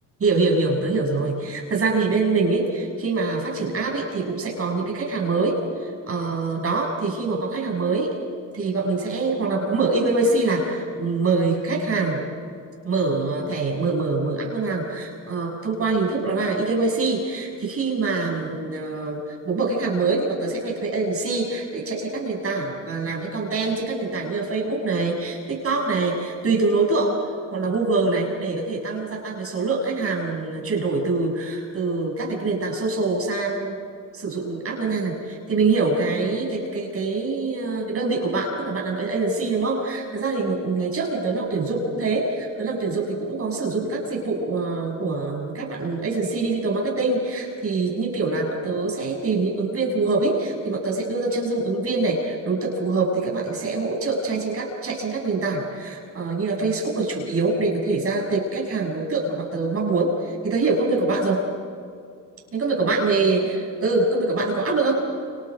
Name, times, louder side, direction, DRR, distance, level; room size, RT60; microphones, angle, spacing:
voice 1, 0.2-8.1 8.5-12.2 12.8-33.8 34.1-61.4 62.5-65.0, right 3 dB, 35° right, 0 dB, 7.7 m, -24 dB
30.0 x 28.0 x 5.2 m, 2.3 s
cardioid pair, 100°, 37 cm